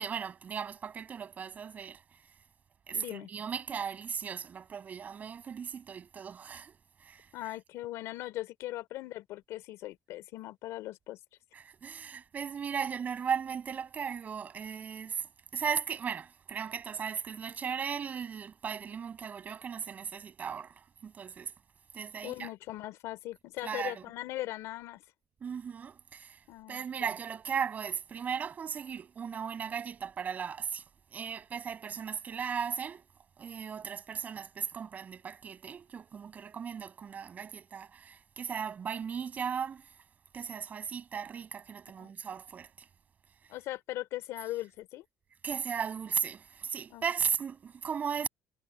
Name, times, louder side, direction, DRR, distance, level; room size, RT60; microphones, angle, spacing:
voice 1, 0.0-2.2 2.9-7.3 11.5-21.5 21.9-22.5 23.6-24.1 25.4-30.8 31.1-33.0 33.4-40.0 40.3-42.9 45.4-48.3, right 7 dB, 35° right, 7.4 m, -37 dB
voice 2, 2.9-3.3 7.3-11.2 22.2-25.0 26.5-27.1 42.0-42.1 43.5-45.0 46.9-47.0, left 16 dB, 80° left, 3.9 m, -39 dB
cardioid pair, 145°, 5 cm